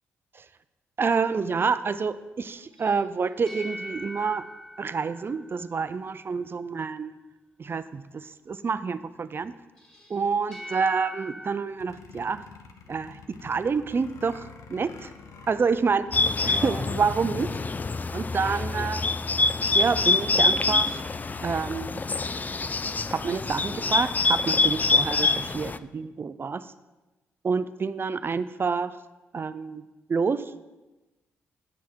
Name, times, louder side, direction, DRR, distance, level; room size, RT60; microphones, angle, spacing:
voice 1, 1.0-4.5 4.8-7.2 7.6-9.5 10.1-12.5 12.9-15.1 15.5-16.1 16.4-17.6 18.1-19.0 19.7-21.0 21.4-22.0 23.1-26.7 27.4-29.0 29.3-30.6, right 5 dB, 40° right, 14 dB, 0.5 m, -28 dB
sound 1, 2.7-6.2 9.8-11.5, equal, 10° left, 2.1 m, -42 dB
sound 2, 11.7-16.6, left 5 dB, 65° left, 0.7 m, -48 dB
Bird, 16.1-25.8, left 3 dB, 30° left, 0.4 m, -25 dB
8.2 x 5.9 x 4.5 m, 1.1 s
hypercardioid pair, 45°, 6 cm